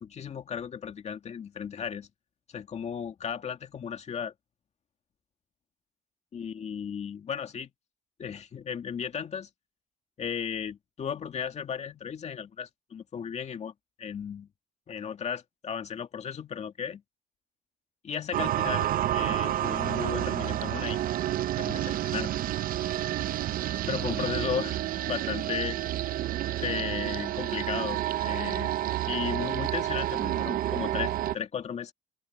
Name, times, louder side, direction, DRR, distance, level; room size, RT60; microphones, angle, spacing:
voice 1, 0.0-2.1 2.5-4.3 6.3-7.7 8.2-9.5 10.2-13.7 14.0-14.5 14.9-17.0 18.0-21.0 21.6-22.3 23.9-24.8 25.1-25.8 26.6-28.7 29.1-31.9, left 7 dB, 40° left, 2.2 m, -35 dB
sound 1, 18.3-31.4, right 13 dB, 55° right, 0.7 m, -29 dB
open air
cardioid pair, 110°, 17 cm